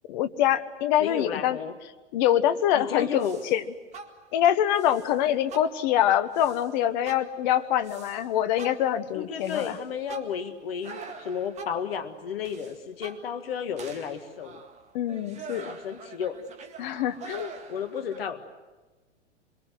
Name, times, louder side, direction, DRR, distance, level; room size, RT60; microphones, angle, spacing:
voice 1, 0.1-1.6 2.1-3.6 4.3-9.8 14.9-15.7 16.8-17.5, left 11 dB, 40° left, 10 dB, 1.4 m, -25 dB
voice 2, 1.0-1.7 2.7-3.4 9.1-14.6 15.7-16.4 17.7-18.4, left 7 dB, 55° left, 8 dB, 1.9 m, -33 dB
sound 1, 3.2-3.6 3.9-4.4 4.7-5.2 5.5-6.0 6.3-6.7 7.0-8.2 8.6-11.9 12.4-13.5 13.8-18.2, right 4 dB, 20° right, 1.9 m, -44 dB
26.0 x 23.5 x 7.9 m, 1.3 s
figure-of-eight pair, 105°, 35 cm